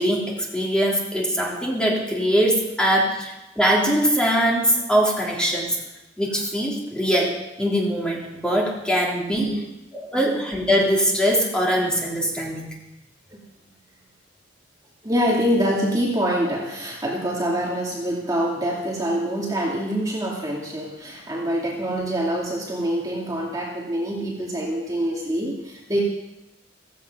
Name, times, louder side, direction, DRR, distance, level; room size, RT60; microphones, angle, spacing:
voice 1, 0.0-5.8 6.2-9.5 9.9-12.7, equal, 5° left, -3 dB, 3.5 m, -22 dB
voice 2, 9.3-9.7 13.3-13.4 15.0-26.0, equal, 20° right, -3 dB, 2.4 m, -25 dB
16.5 x 15.5 x 5.4 m, 0.94 s
head